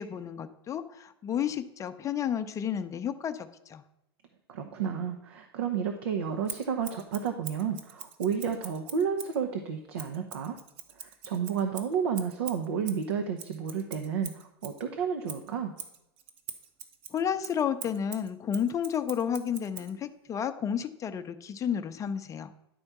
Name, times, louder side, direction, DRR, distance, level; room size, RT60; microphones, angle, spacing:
voice 1, 0.0-3.8 17.1-22.5, left 8 dB, 25° left, 9 dB, 0.7 m, -31 dB
voice 2, 4.5-10.6 11.0-15.7, right 7 dB, 65° right, 5 dB, 0.9 m, -31 dB
Scissors, 6.5-9.4 10.0-14.8 15.3-19.9, right 8 dB, 40° right, 1.0 m, -44 dB
11.0 x 4.4 x 5.9 m, 0.87 s
figure-of-eight pair, 90°, 14 cm